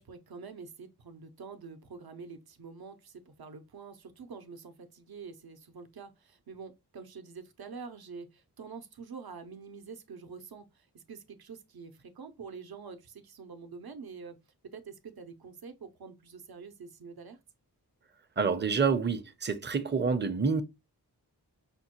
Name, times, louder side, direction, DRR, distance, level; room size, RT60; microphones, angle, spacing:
voice 1, 0.0-14.4 14.6-17.4, right 5 dB, 65° right, 0.7 m, -46 dB
voice 2, 18.4-20.6, right 5 dB, 30° right, 0.5 m, -28 dB
5.2 x 2.2 x 2.9 m
wide cardioid pair, 45°, 39 cm